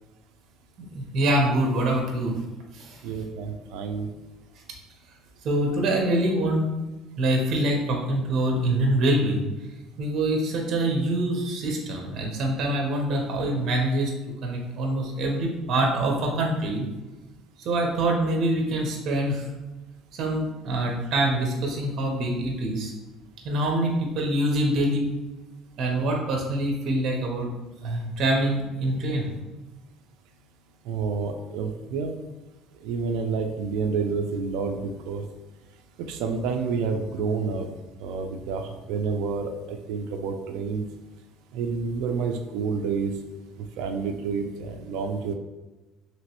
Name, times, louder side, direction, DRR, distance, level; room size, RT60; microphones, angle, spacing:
voice 1, 0.8-2.4 2.7-3.0 5.4-6.7 7.2-9.4 10.0-14.1 14.4-16.9 17.6-19.5 20.1-22.9 23.4-25.1 25.8-27.5 27.8-29.3, right 1 dB, 50° right, 1 dB, 0.7 m, -25 dB
voice 2, 3.0-4.1 30.9-32.2 32.8-35.2 36.1-37.7 38.0-38.6 38.9-40.8 41.5-43.1 43.8-45.3, right 5 dB, 80° right, 5 dB, 0.3 m, -29 dB
3.0 x 3.0 x 2.9 m, 1.1 s
cardioid pair, 140°, 0 cm